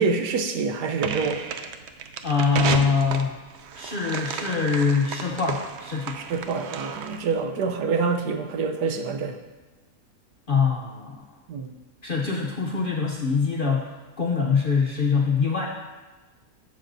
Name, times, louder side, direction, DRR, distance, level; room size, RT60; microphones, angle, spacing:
voice 1, 0.0-1.4 6.1-9.4 11.5-11.8 12.3-12.4, right 5 dB, 90° right, 5 dB, 1.4 m, -26 dB
sound 1, 1.0-7.4, right 6 dB, 70° right, 0.6 m, -32 dB
voice 2, 2.2-3.4 3.7-6.2 10.5-11.2 12.0-13.9 14.2-15.7, left 5 dB, 55° left, -1 dB, 0.6 m, -24 dB
12.0 x 7.4 x 2.6 m, 1.2 s
omnidirectional pair, 1.7 m